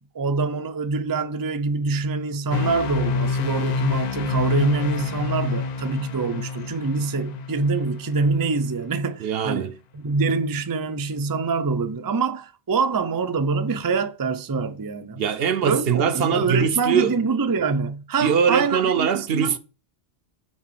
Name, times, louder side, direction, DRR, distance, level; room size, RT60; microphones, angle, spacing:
voice 1, 0.1-15.2 15.6-19.6, right 4 dB, 30° right, 0.4 m, -25 dB
sound 1, 2.5-8.6, left 5 dB, 50° left, 0.5 m, -27 dB
voice 2, 9.2-9.8 15.2-17.1 18.2-19.6, right 7 dB, 65° right, 0.8 m, -22 dB
6.4 x 3.8 x 6.0 m
omnidirectional pair, 1.1 m